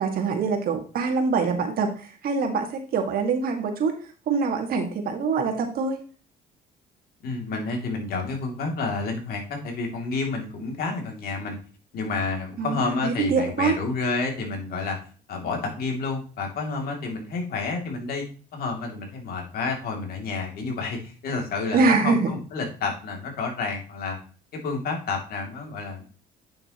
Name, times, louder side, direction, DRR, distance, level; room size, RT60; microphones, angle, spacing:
voice 1, 0.0-4.0 4.3-6.0 12.6-13.8 21.7-22.3, right 4 dB, 60° right, 4 dB, 1.8 m, -24 dB
voice 2, 7.2-11.6 11.9-15.0 15.3-18.2 18.5-24.2 24.5-26.0, left 4 dB, 65° left, 2 dB, 2.6 m, -30 dB
8.6 x 6.5 x 2.9 m, 0.38 s
cardioid pair, 110°, 17 cm